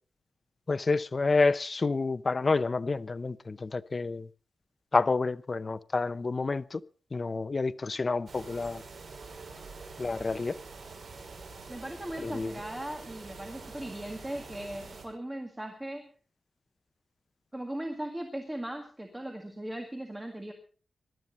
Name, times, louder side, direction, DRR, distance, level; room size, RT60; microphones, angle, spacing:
voice 1, 0.7-4.3 4.9-6.8 7.1-8.8 10.0-10.6 12.2-12.5, left 3 dB, 30° left, 0.6 m, -28 dB
sound 1, 8.3-15.1, right 4 dB, 65° right, 5.0 m, -46 dB
voice 2, 11.7-16.1 17.5-20.5, right 1 dB, 10° right, 2.0 m, -38 dB
21.0 x 12.5 x 4.2 m
wide cardioid pair, 165°, 0 cm